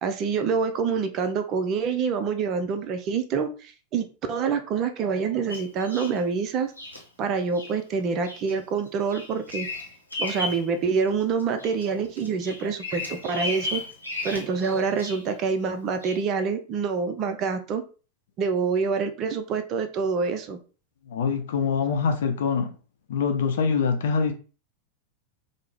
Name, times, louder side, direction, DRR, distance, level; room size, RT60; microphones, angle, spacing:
voice 1, 0.0-6.7 7.2-9.7 10.2-13.8 14.2-17.8 18.4-20.6, right 5 dB, 35° right, 0.4 m, -26 dB
Bird vocalization bird call bird song, 5.5-6.2 6.8-7.0 7.5-7.7 8.2-8.5 8.9-10.7 11.1-11.9 12.2-15.3 16.0-16.2, left 2 dB, 85° left, 0.8 m, -34 dB
voice 2, 21.1-22.7 23.1-24.3, left 5 dB, 60° left, 0.5 m, -24 dB
3.2 x 2.0 x 3.5 m
figure-of-eight pair, 90°, 0 cm